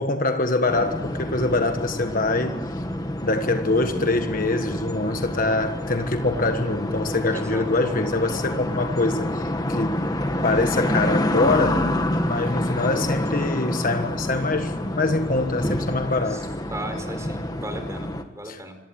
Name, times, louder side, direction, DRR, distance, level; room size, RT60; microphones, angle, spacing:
voice 1, 0.0-2.6 3.2-10.0 10.4-11.8 12.2-16.5 18.4-18.6, left 2 dB, 40° left, 1.5 m, -24 dB
sound 1, 0.7-18.2, left 1 dB, 20° left, 1.8 m, -28 dB
voice 2, 7.3-8.0 16.3-16.4 16.7-18.8, right 1 dB, 15° right, 4.5 m, -36 dB
26.5 x 23.0 x 9.0 m
head